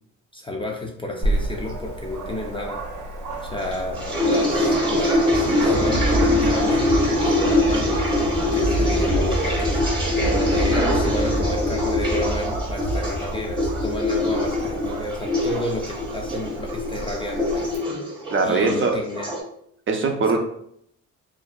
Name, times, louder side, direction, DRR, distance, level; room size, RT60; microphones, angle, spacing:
voice 1, 0.3-2.8 3.4-8.2 8.5-17.8 18.4-19.3, left 1 dB, 20° left, 0 dB, 0.3 m, -31 dB
Dog, 1.2-17.8, right 1 dB, 75° right, 0.7 m, -34 dB
sound 1, 3.7-19.4, left 1 dB, 15° right, 0.9 m, -23 dB
Thunder, 5.1-15.5, right 1 dB, 90° left, 0.7 m, -28 dB
voice 2, 10.1-10.5 18.3-19.0 19.9-20.4, right 4 dB, 45° right, 3 dB, 0.5 m, -22 dB
2.6 x 2.1 x 2.3 m, 0.69 s
cardioid pair, 90°, 30 cm